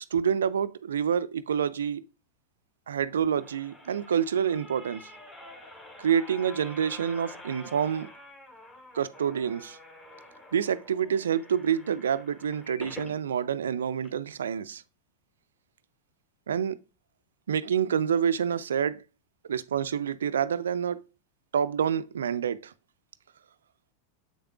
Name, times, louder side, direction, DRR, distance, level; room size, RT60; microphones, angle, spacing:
voice 1, 0.1-2.0 2.9-5.0 6.0-8.1 8.9-9.8 10.5-14.8 16.5-16.8 17.5-19.0 19.5-21.0 21.5-22.7, right 8 dB, 70° right, 0.3 m, -27 dB
sound 1, 3.0-13.1 13.6-13.7 14.0-14.1, left 1 dB, 20° left, 2.2 m, -48 dB
7.9 x 6.4 x 2.4 m
figure-of-eight pair, 90°, 0 cm